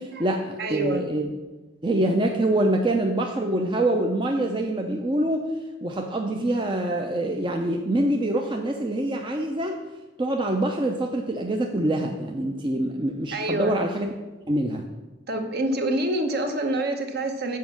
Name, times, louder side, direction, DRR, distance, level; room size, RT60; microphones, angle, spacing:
voice 1, 0.0-1.3 1.8-5.4 5.8-9.8 10.2-14.1 14.5-14.8, right 1 dB, 25° right, 2 dB, 0.6 m, -25 dB
voice 2, 0.6-1.0 13.3-13.7 15.3-17.6, right 1 dB, 50° right, 5 dB, 1.0 m, -26 dB
7.6 x 5.1 x 7.2 m, 1.1 s
head